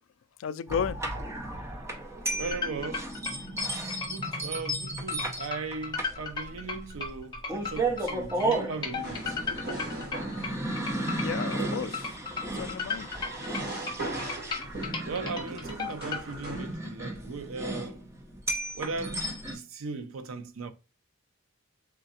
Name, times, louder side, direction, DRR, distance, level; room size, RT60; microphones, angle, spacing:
voice 1, 0.4-1.0 11.2-12.1 12.5-13.1, left 7 dB, 65° left, 0.3 m, -33 dB
sound 1, 0.7-19.6, right 2 dB, 15° right, 0.6 m, -34 dB
voice 2, 2.4-3.1 4.1-9.4 15.0-18.0 18.7-20.7, right 4 dB, 70° right, 0.5 m, -38 dB
sound 2, 2.5-16.2, left 5 dB, 20° left, 1.0 m, -35 dB
sound 3, 8.9-16.7, right 1 dB, 50° right, 1.4 m, -40 dB
3.7 x 3.3 x 2.7 m
head